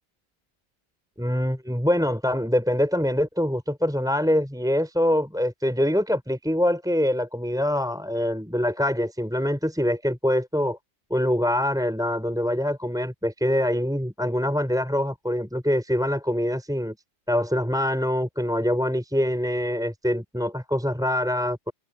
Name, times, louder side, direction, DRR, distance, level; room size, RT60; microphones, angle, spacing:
voice 1, 1.2-10.8 11.1-17.0 17.3-21.7, equal, ahead, 5.0 m, -24 dB
omnidirectional pair, 5.2 m